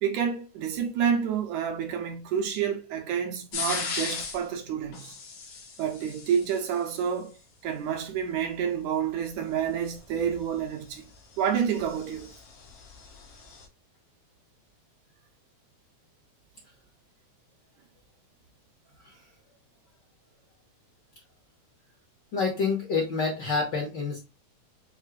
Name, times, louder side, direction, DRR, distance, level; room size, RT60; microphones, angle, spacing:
voice 1, 0.0-5.1 5.8-7.3 7.6-11.1 11.4-12.3, right 8 dB, 80° right, 2.1 m, -29 dB
sound 1, 3.5-4.4 4.9-7.0 9.6-13.6, left 5 dB, 80° left, 1.0 m, -38 dB
voice 2, 22.3-24.2, left 4 dB, 55° left, 1.3 m, -27 dB
6.4 x 2.7 x 2.4 m
omnidirectional pair, 3.4 m